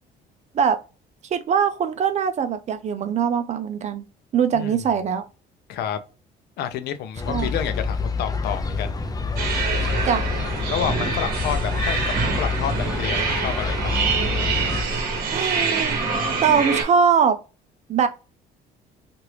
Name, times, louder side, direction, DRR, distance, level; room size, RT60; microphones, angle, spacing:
voice 1, 1.3-4.0 4.3-5.2 7.3-7.5 10.1-10.2 15.3-16.0 16.4-17.4 17.9-18.1, right 7 dB, 40° right, 0.5 m, -21 dB
voice 2, 6.6-8.9 10.7-13.9, left 9 dB, 75° left, 0.5 m, -29 dB
sound 1, 7.2-14.8, left 4 dB, 20° left, 0.5 m, -27 dB
sound 2, 9.4-16.8, right 4 dB, 60° right, 1.0 m, -25 dB
2.9 x 2.5 x 3.1 m
cardioid pair, 110°, 17 cm